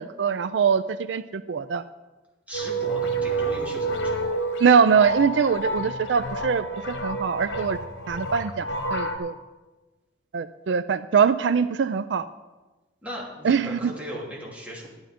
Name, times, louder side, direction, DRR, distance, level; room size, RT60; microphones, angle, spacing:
voice 1, 0.0-1.8 4.6-7.8 8.1-9.3 10.3-12.3 13.4-13.9, right 6 dB, 75° right, 13 dB, 0.4 m, -23 dB
sound 1, 2.5-9.2, right 2 dB, 90° left, 1.2 m, -29 dB
voice 2, 2.5-4.4 13.0-14.9, equal, 10° right, -4 dB, 2.9 m, -37 dB
11.5 x 9.9 x 5.2 m, 1.2 s
head